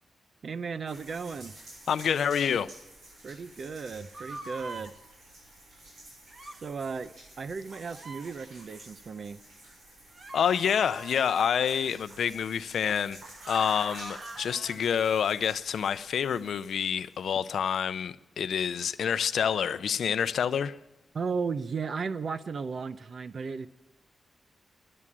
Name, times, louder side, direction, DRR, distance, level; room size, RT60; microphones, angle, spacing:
voice 1, 0.4-1.6 3.2-4.9 6.6-9.4 21.1-23.7, right 5 dB, 55° right, 0.7 m, -35 dB
sound 1, 0.9-17.3, right 1 dB, 80° right, 6.9 m, -52 dB
voice 2, 1.9-2.7 10.3-13.2 13.5-20.8, left 8 dB, 80° left, 0.5 m, -27 dB
sound 2, 4.1-4.9 6.3-6.6 7.9-8.3 10.1-12.0 13.3-14.8, right 2 dB, 40° right, 1.5 m, -43 dB
12.5 x 11.0 x 8.6 m
wide cardioid pair, 105°, 0 cm